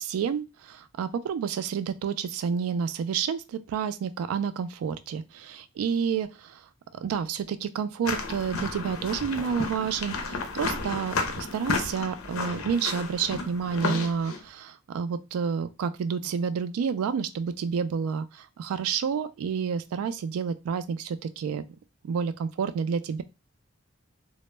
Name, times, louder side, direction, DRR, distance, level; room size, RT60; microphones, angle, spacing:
voice 1, 0.0-6.6 7.0-21.6 22.0-23.2, right 6 dB, 85° right, 12 dB, 0.3 m, -29 dB
sound 1, 8.0-14.4, left 4 dB, 75° left, 0.5 m, -32 dB
2.1 x 2.0 x 3.1 m, 0.27 s
head